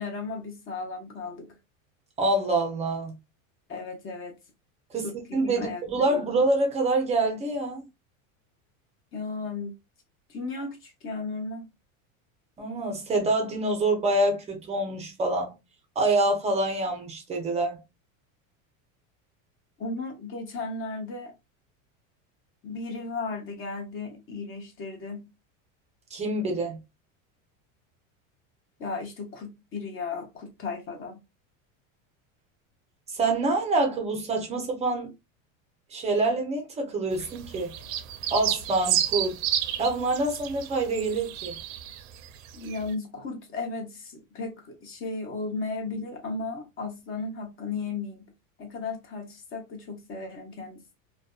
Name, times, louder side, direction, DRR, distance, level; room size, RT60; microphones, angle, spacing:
voice 1, 0.0-1.5 3.7-4.4 5.0-6.2 9.1-9.7 10.3-11.6 19.8-21.3 22.6-25.3 28.8-31.2 42.5-48.2 48.6-51.0, left 3 dB, 30° left, 0.8 m, -35 dB
voice 2, 2.2-3.1 4.9-5.1 5.3-7.9 12.6-15.5 16.0-17.8 26.1-26.8 33.1-35.1 35.9-37.8 38.3-39.4 39.8-41.5, right 2 dB, 15° right, 0.5 m, -26 dB
sound 1, 37.1-42.3 42.5-42.8, right 11 dB, 75° right, 0.6 m, -31 dB
2.5 x 2.2 x 2.3 m
supercardioid pair, 140°, 41 cm